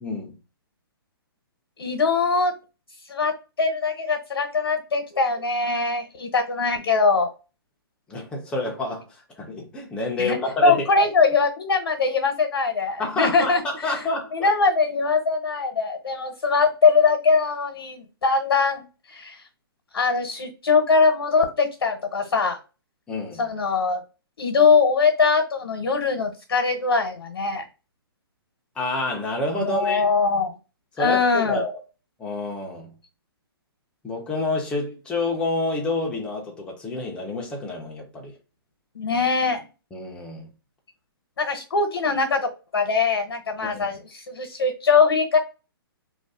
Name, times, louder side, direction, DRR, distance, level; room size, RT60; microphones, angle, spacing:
voice 1, 0.0-0.4 8.1-9.1 9.4-10.8 13.0-14.5 23.1-23.5 28.8-30.1 31.0-31.7 32.2-32.9 34.0-38.3 39.9-40.5 43.7-43.9, left 2 dB, 5° left, 0.6 m, -28 dB
voice 2, 1.8-2.5 3.1-3.3 3.6-7.3 10.2-14.0 14.3-19.4 19.9-22.6 23.4-24.0 24.4-27.6 29.6-30.5 31.0-31.6 38.9-39.6 41.4-45.4, left 4 dB, 80° left, 0.9 m, -22 dB
2.6 x 2.3 x 3.5 m
hypercardioid pair, 150°, 13 cm